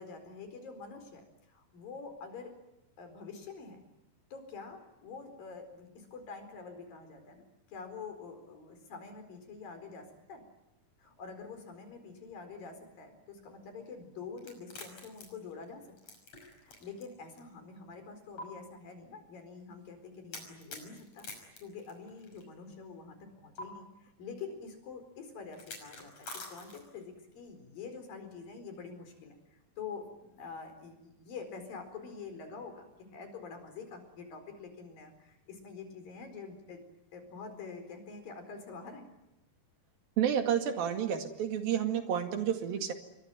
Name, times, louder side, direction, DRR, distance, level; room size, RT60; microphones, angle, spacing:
voice 1, 0.0-2.5 3.0-3.8 4.3-10.4 11.0-15.8 16.1-16.2 16.6-21.3 21.6-36.8 37.1-39.0, left 5 dB, 75° left, 7 dB, 6.2 m, -46 dB
sound 1, 14.4-17.1 17.4-17.5 18.4-18.5 20.3-22.4 23.6-23.7 25.5-27.0, left 2 dB, 45° left, 6.9 m, -46 dB
voice 2, 40.2-42.9, right 9 dB, 85° right, 6 dB, 3.9 m, -30 dB
27.0 x 23.5 x 9.3 m, 0.91 s
omnidirectional pair, 4.1 m